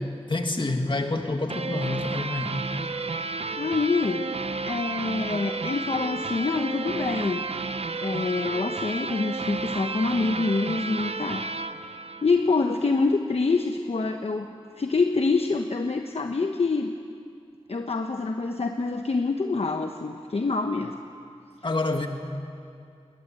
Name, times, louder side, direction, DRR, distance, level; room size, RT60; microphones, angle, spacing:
voice 1, 0.3-2.6 21.6-22.1, left 2 dB, 50° left, 4 dB, 2.2 m, -27 dB
sound 1, 1.5-12.8, right 3 dB, 70° right, 0.8 m, -32 dB
voice 2, 3.6-4.3 4.7-7.4 8.0-11.4 12.2-14.5 14.8-16.9 17.7-21.0, left 3 dB, 70° left, 4 dB, 1.0 m, -26 dB
21.5 x 19.5 x 9.0 m, 2.4 s
wide cardioid pair, 65°, 11 cm